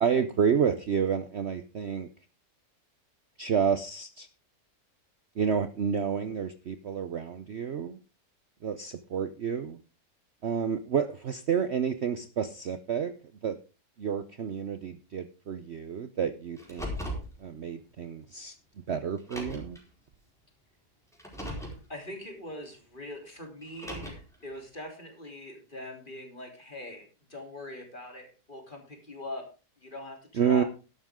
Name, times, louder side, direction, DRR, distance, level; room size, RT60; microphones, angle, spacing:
voice 1, 0.0-2.1 3.4-4.3 5.4-8.0 8.6-9.8 10.4-13.1 13.4-13.6 14.0-17.0 17.4-18.5 18.9-19.8 30.4-30.6, right 7 dB, 50° right, 11 dB, 0.9 m, -29 dB
Car, 16.6-17.3 18.4-18.5 19.2-19.8 21.1-21.8 23.6-24.3, equal, ahead, 4.4 m, -37 dB
voice 2, 21.3-29.5 29.8-30.6, left 1 dB, 30° left, 3 dB, 3.5 m, -42 dB
12.0 x 11.5 x 3.7 m, 0.32 s
omnidirectional pair, 1.7 m